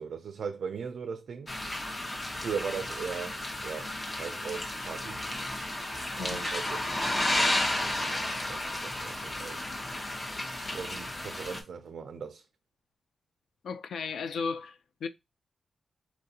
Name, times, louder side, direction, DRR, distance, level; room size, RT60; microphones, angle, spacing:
voice 1, 0.0-1.5 2.3-5.2 6.2-6.8 7.3-9.6 10.7-12.5, right 6 dB, 70° right, 0.3 m, -39 dB
sound 1, 1.5-11.6, left 1 dB, 25° left, 0.8 m, -33 dB
voice 2, 13.6-15.1, left 5 dB, 80° left, 0.4 m, -35 dB
4.2 x 2.4 x 2.7 m
wide cardioid pair, 115°, 0 cm